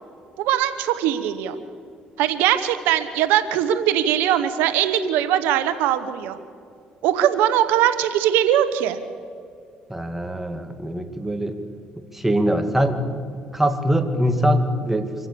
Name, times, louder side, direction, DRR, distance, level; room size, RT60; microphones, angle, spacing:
voice 1, 0.4-1.6 2.2-6.4 7.0-9.0, right 11 dB, 90° right, 11 dB, 1.1 m, -21 dB
voice 2, 9.9-11.6 12.1-13.2 13.5-15.1, equal, 10° right, 7 dB, 2.2 m, -22 dB
26.0 x 15.5 x 6.9 m, 2.3 s
supercardioid pair, 80°, 3 cm